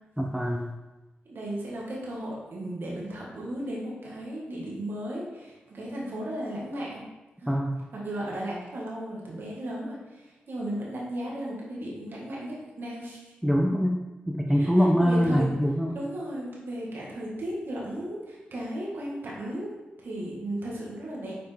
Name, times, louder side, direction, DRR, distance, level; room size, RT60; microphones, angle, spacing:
voice 1, 0.2-0.6 7.5-7.8 13.4-16.0, equal, 5° right, -1 dB, 0.8 m, -24 dB
voice 2, 1.3-7.0 7.4-7.5 7.9-13.2 14.6-14.7 15.0-15.4 15.9-19.7 20.0-21.3, right 1 dB, 65° right, -4 dB, 1.7 m, -35 dB
6.6 x 4.5 x 3.5 m, 1.1 s
cardioid pair, 45°, 4 cm